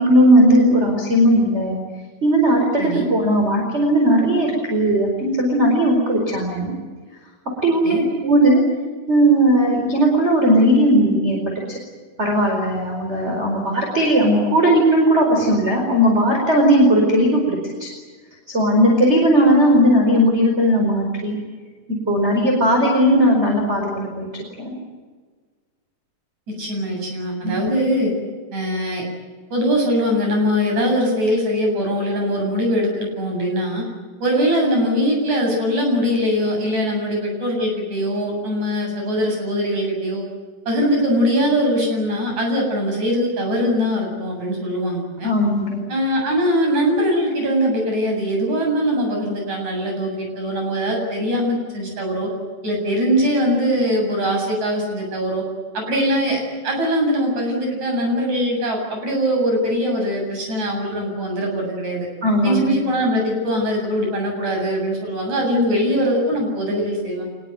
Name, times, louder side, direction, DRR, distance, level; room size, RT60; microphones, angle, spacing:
voice 1, 0.0-1.8 2.2-6.7 7.6-8.6 9.1-11.4 12.2-17.9 18.5-21.4 22.1-24.3 24.6-24.7 27.4-27.6 45.2-45.8 62.2-62.8, equal, 15° right, 0 dB, 4.8 m, -17 dB
voice 2, 26.5-28.1 28.5-29.0 29.5-33.8 34.2-40.3 40.7-45.3 45.9-52.3 52.6-55.4 55.7-62.1 62.4-67.3, equal, 45° right, 1 dB, 9.1 m, -21 dB
25.5 x 21.0 x 9.4 m, 1.5 s
omnidirectional pair, 4.8 m